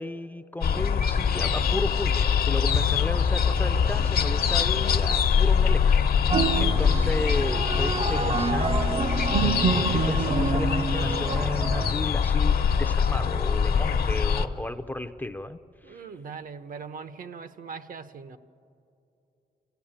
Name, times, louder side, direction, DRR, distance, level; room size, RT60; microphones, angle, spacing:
voice 1, 0.0-5.9 6.1-6.3 6.6-15.6 15.9-16.0, left 2 dB, 10° left, 9 dB, 0.5 m, -34 dB
sound 1, 0.6-14.5, left 6 dB, 65° left, 1.0 m, -24 dB
sound 2, 6.3-11.9, right 5 dB, 35° right, 0.5 m, -27 dB
voice 2, 15.8-18.4, right 5 dB, 55° right, 12 dB, 0.8 m, -40 dB
28.0 x 16.0 x 8.8 m, 2.7 s
wide cardioid pair, 145°, 17 cm